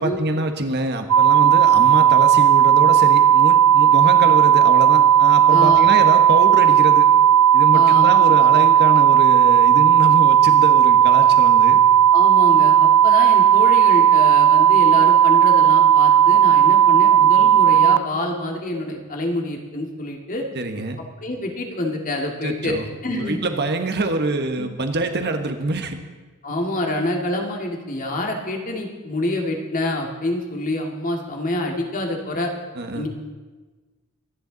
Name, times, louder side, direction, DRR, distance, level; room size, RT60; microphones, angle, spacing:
voice 1, 0.0-7.1 7.5-11.8 20.5-21.0 22.4-22.8 23.1-26.0 32.8-33.1, right 2 dB, 50° right, 6 dB, 1.3 m, -25 dB
sound 1, 1.1-18.0, right 9 dB, 75° right, 0.4 m, -14 dB
voice 2, 5.5-5.9 7.7-8.2 12.1-20.4 21.2-22.8 23.0-23.4 24.6-24.7 26.4-32.5 32.9-33.1, left 1 dB, 35° left, 1 dB, 2.1 m, -27 dB
24.5 x 10.5 x 4.0 m, 1.3 s
head